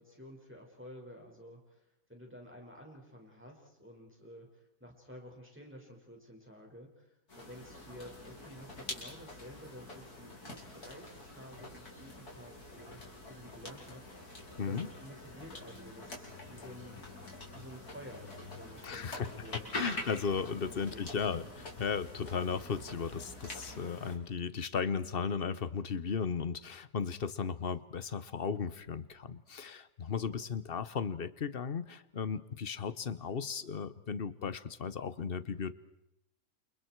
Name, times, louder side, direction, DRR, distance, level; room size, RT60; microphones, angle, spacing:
voice 1, 0.0-1.8 2.1-4.5 4.8-13.0 13.3-17.0 17.5-19.8 20.6-21.1, equal, 5° right, -1 dB, 5.7 m, -51 dB
sound 1, 7.3-24.2, left 2 dB, 65° left, 5.2 m, -46 dB
voice 2, 18.8-19.3 19.7-35.7, left 6 dB, 40° left, 15 dB, 1.0 m, -36 dB
30.0 x 28.5 x 4.7 m, 0.84 s
omnidirectional pair, 1.8 m